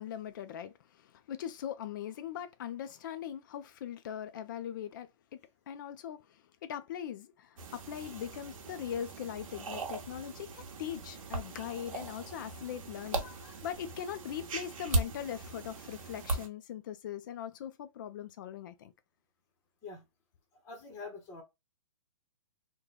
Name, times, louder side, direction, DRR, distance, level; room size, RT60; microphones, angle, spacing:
voice 1, 0.0-5.4 5.7-18.9, left 9 dB, 35° left, 0.4 m, -41 dB
sound 1, 7.6-16.5, right 2 dB, 70° right, 0.9 m, -38 dB
voice 2, 20.5-21.4, left 3 dB, 15° left, 0.8 m, -45 dB
3.0 x 2.2 x 3.8 m
hypercardioid pair, 155°, 18 cm